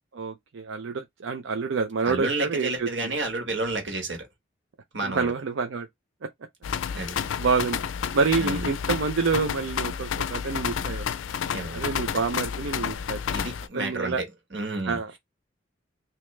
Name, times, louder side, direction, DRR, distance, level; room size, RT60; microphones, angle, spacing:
voice 1, 0.1-3.1 5.0-5.9 6.2-6.3 7.4-7.8 8.1-11.1 11.7-13.4 13.7-14.2 14.9-15.1, right 4 dB, 85° right, 0.5 m, -27 dB
voice 2, 2.0-4.3 4.9-5.3 6.9-7.1 8.4-8.7 11.5-11.9 13.3-14.3 14.5-15.0, right 2 dB, 65° right, 1.5 m, -30 dB
sound 1, 6.6-13.7, left 7 dB, 90° left, 0.4 m, -30 dB
3.2 x 2.9 x 3.1 m
head